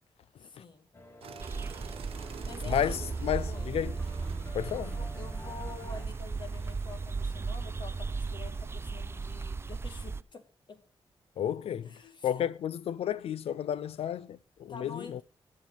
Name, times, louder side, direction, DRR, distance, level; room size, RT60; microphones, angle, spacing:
voice 1, 0.4-0.9 2.4-3.1 3.4-3.7 4.6-10.8 11.8-12.5 14.7-15.2, left 4 dB, 50° left, 1.6 m, -48 dB
sound 1, 0.9-6.1, left 2 dB, 25° left, 1.3 m, -49 dB
sound 2, 1.2-9.0, right 8 dB, 75° right, 0.8 m, -50 dB
sound 3, 1.4-10.2, right 4 dB, 25° right, 0.4 m, -36 dB
voice 2, 2.7-4.0 4.5-4.9 11.4-11.9 12.2-15.2, left 9 dB, 85° left, 0.5 m, -32 dB
10.0 x 6.6 x 5.6 m
wide cardioid pair, 110°, 10 cm